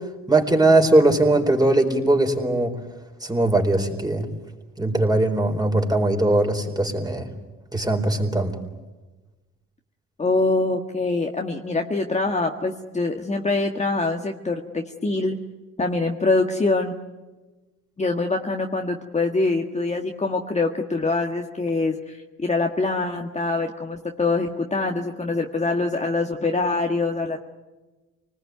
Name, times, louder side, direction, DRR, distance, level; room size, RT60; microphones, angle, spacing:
voice 1, 0.3-2.7 3.2-4.3 4.8-7.3 7.7-8.6, right 2 dB, 15° right, 3 dB, 4.4 m, -20 dB
voice 2, 10.2-15.4 15.8-16.9 18.0-27.4, left 3 dB, 20° left, 2 dB, 1.7 m, -24 dB
25.5 x 20.0 x 9.4 m, 1.2 s
cardioid pair, 90°, 30 cm